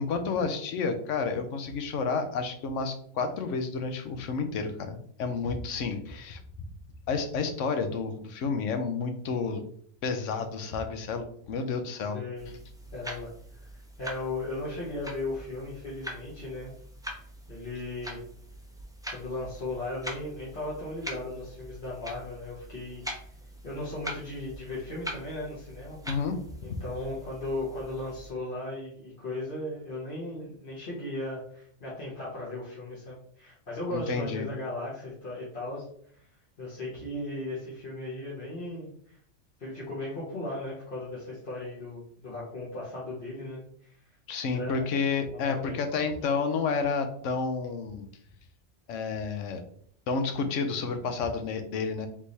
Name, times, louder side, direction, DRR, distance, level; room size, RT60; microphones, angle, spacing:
voice 1, 0.0-6.4 7.1-9.6 10.0-12.2 26.1-26.4 33.9-34.5 44.3-48.1 48.9-49.6 50.1-52.1, left 4 dB, 90° left, 7 dB, 1.0 m, -30 dB
voice 2, 12.1-12.5 12.9-13.7 14.0-16.7 17.5-18.2 19.1-23.0 23.6-26.0 26.6-35.8 36.1-36.3 36.6-39.2 39.6-44.0 44.5-44.9 45.3-45.7, left 2 dB, 45° left, -8 dB, 1.3 m, -36 dB
sound 1, 12.4-28.3, equal, 5° right, 0.4 m, -43 dB
3.6 x 3.1 x 4.0 m, 0.63 s
omnidirectional pair, 1.2 m